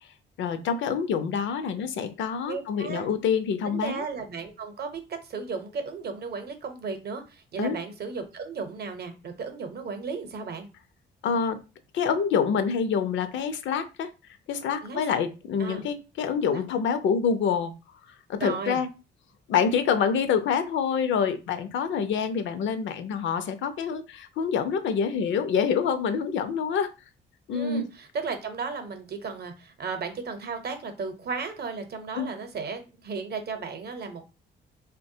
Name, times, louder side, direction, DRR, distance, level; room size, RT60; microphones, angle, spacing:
voice 1, 0.4-4.0 7.6-7.8 11.2-11.6 11.9-14.1 14.5-17.7 18.1-18.9 19.5-26.9 27.5-27.9 32.1-32.3, left 6 dB, 70° left, 10 dB, 0.5 m, -26 dB
voice 2, 2.5-3.1 3.6-10.7 14.8-15.0 15.6-15.8 16.5-16.6 18.4-18.8 27.5-34.2, right 5 dB, 55° right, 7 dB, 0.7 m, -35 dB
3.4 x 2.2 x 2.6 m, 0.30 s
cardioid pair, 90°, 20 cm